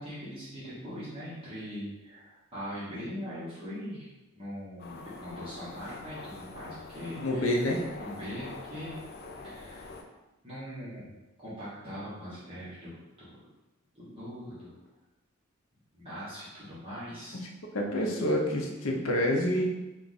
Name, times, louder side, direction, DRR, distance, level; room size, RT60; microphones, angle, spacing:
voice 1, 0.0-4.1 4.3-7.6 8.0-9.0 9.4-9.9 10.4-13.4 13.9-14.8 15.9-17.4, equal, 25° right, -11 dB, 1.3 m, -41 dB
sound 1, 4.8-10.0, left 3 dB, 50° left, 0.5 m, -45 dB
voice 2, 7.2-7.8 17.7-19.7, left 1 dB, 80° left, 0 dB, 0.8 m, -27 dB
4.6 x 2.5 x 4.0 m, 1.0 s
head